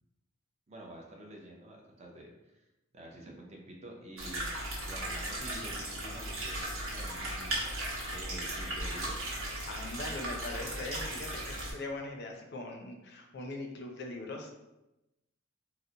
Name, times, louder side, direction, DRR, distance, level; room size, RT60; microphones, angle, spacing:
voice 1, 0.7-2.6 2.9-9.1, right 1 dB, 35° right, 0 dB, 0.5 m, -49 dB
sound 1, 4.2-11.7, right 1 dB, 85° right, 1.0 m, -37 dB
voice 2, 9.7-14.5, left 2 dB, 55° left, 3 dB, 0.4 m, -41 dB
3.8 x 2.0 x 2.7 m, 0.95 s
head